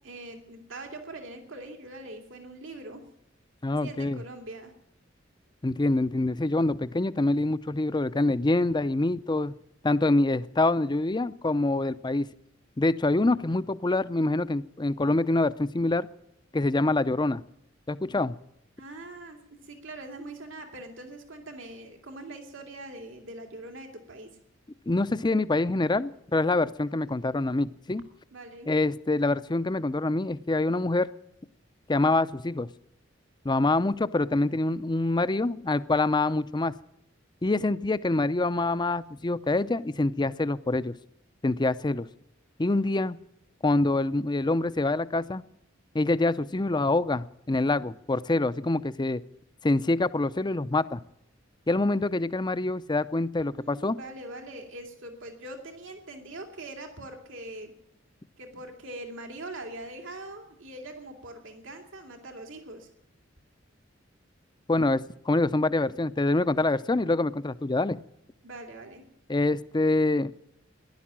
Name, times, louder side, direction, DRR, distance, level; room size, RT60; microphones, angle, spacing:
voice 1, 0.0-3.0 3.8-4.7 18.8-24.4 28.3-28.7 53.5-57.7 58.4-62.9 68.4-69.0, right 2 dB, 80° right, 4 dB, 2.5 m, -42 dB
voice 2, 3.6-4.2 5.6-9.5 9.8-12.3 12.8-16.1 16.5-17.4 17.9-18.4 24.9-28.0 28.7-31.1 31.9-32.7 33.4-36.7 37.4-40.9 41.4-42.1 42.6-43.2 43.6-45.4 45.9-49.2 49.6-51.0 51.7-54.0 64.7-68.0 69.3-70.3, left 2 dB, 25° left, 15 dB, 0.6 m, -25 dB
15.5 x 11.5 x 7.4 m, 0.77 s
head